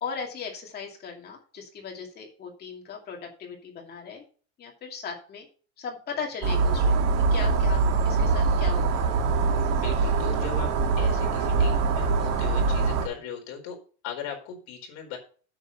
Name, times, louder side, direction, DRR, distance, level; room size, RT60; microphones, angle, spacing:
voice 1, 0.0-4.3 4.6-5.5 5.8-9.0, left 6 dB, 25° left, 1 dB, 2.5 m, -37 dB
sound 1, 6.4-13.1, right 4 dB, 40° right, 2.2 m, -23 dB
voice 2, 9.8-10.7 11.0-13.8 14.0-15.2, left 8 dB, 50° left, 1 dB, 4.4 m, -38 dB
9.3 x 8.0 x 5.4 m, 0.40 s
cardioid pair, 175°, 39 cm